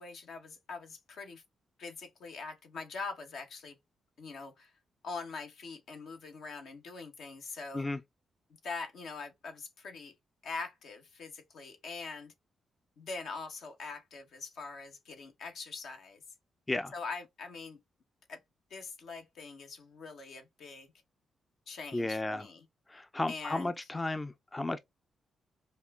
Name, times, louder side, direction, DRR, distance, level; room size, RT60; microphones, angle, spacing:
voice 1, 0.0-1.4 1.8-3.8 4.2-4.7 5.0-7.9 8.6-10.1 10.4-12.3 13.0-16.2 16.9-17.8 18.3-18.4 18.7-20.9 21.7-22.6 23.3-23.7, left 4 dB, 75° left, 0.9 m, -43 dB
voice 2, 21.9-22.5 22.9-24.8, left 2 dB, 25° left, 0.4 m, -33 dB
5.2 x 2.3 x 2.3 m
supercardioid pair, 50°, 0 cm